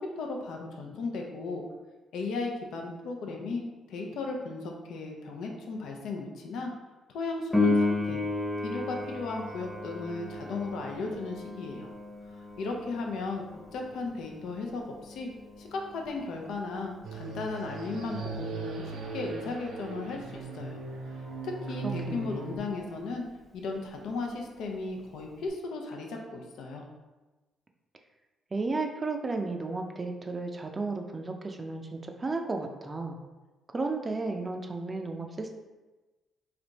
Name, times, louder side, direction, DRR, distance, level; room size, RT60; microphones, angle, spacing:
voice 1, 0.0-1.6 2.1-6.7 7.1-8.2 8.6-11.9 12.3-13.5 13.7-15.3 15.6-20.8 21.4-23.2 23.5-26.8, left 3 dB, 80° left, 1 dB, 0.6 m, -36 dB
Piano, 7.5-17.9 25.5-25.6, left 2 dB, 10° left, 0.8 m, -34 dB
sound 1, 17.0-22.6, right 3 dB, 75° right, 0.5 m, -38 dB
voice 2, 21.8-22.6 28.5-33.2 33.7-35.5, right 3 dB, 30° right, 4 dB, 0.5 m, -33 dB
3.3 x 2.6 x 4.0 m, 1.2 s
cardioid pair, 90°, 0 cm